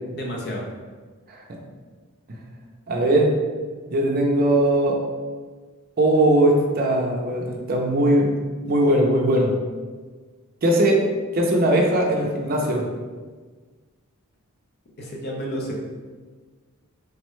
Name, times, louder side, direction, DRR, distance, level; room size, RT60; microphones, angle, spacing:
voice 1, 0.1-0.6 15.0-15.7, equal, 50° left, -1 dB, 0.5 m, -30 dB
voice 2, 2.9-3.3 3.9-5.0 6.0-8.3 8.6-9.5 10.6-11.0 11.3-12.8, right 1 dB, 45° right, 0 dB, 0.5 m, -19 dB
3.4 x 2.1 x 3.0 m, 1.4 s
head